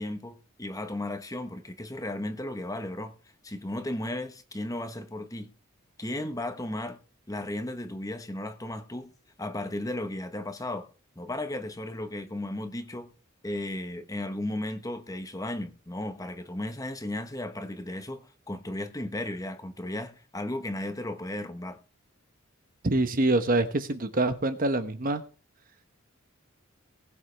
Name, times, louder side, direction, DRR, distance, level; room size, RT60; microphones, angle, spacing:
voice 1, 0.0-3.1 3.4-5.5 6.0-7.0 7.3-9.1 9.4-10.9 11.2-13.1 13.4-21.8, left 1 dB, 15° left, 1.2 m, -35 dB
voice 2, 22.8-25.2, right 2 dB, 45° right, 1.1 m, -25 dB
20.0 x 7.8 x 3.4 m
head